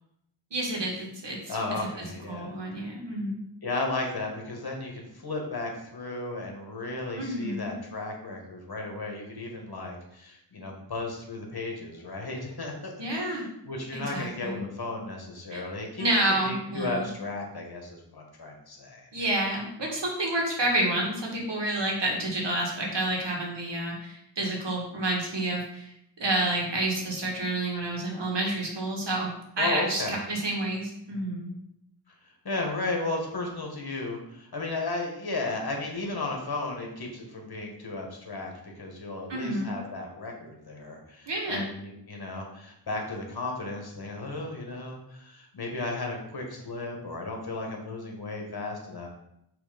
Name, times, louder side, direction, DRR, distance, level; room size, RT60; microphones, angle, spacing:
voice 1, 0.5-1.6 2.0-3.4 7.2-7.7 13.0-13.4 13.9-14.6 15.5-15.6 16.0-17.1 19.1-31.6 39.3-39.8 41.3-41.7, right 1 dB, 65° right, -1 dB, 1.8 m, -29 dB
voice 2, 1.5-2.8 3.6-16.0 16.4-19.1 29.6-30.2 32.4-49.1, left 2 dB, 55° left, 1 dB, 1.6 m, -34 dB
6.2 x 3.3 x 5.2 m, 0.77 s
wide cardioid pair, 80°, 45 cm